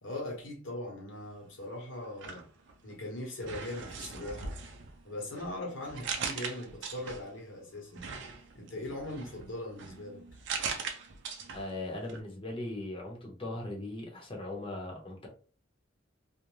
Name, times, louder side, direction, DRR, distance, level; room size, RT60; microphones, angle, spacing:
voice 1, 0.0-2.5 2.8-4.6 5.0-8.1 8.5-10.2, left 1 dB, 70° left, 1.1 m, -40 dB
sound 1, 2.0-3.0 3.4-7.4 7.9-11.8 12.1-12.2, right 5 dB, 65° right, 0.5 m, -40 dB
voice 2, 11.5-15.3, left 2 dB, 25° left, 0.8 m, -39 dB
2.5 x 2.1 x 3.0 m
head